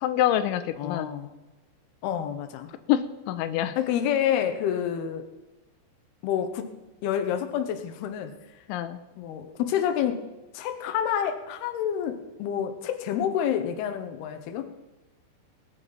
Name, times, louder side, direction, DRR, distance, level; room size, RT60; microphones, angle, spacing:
voice 1, 0.0-1.1 2.9-3.8 8.7-9.0, left 11 dB, 90° left, 10 dB, 3.1 m, -26 dB
voice 2, 0.8-1.3 2.0-2.7 3.8-5.3 6.2-6.7 7.0-8.4 9.2-10.2 10.5-14.7, left 9 dB, 70° left, 7 dB, 2.8 m, -28 dB
20.0 x 8.7 x 5.6 m, 1.1 s
omnidirectional pair, 5.3 m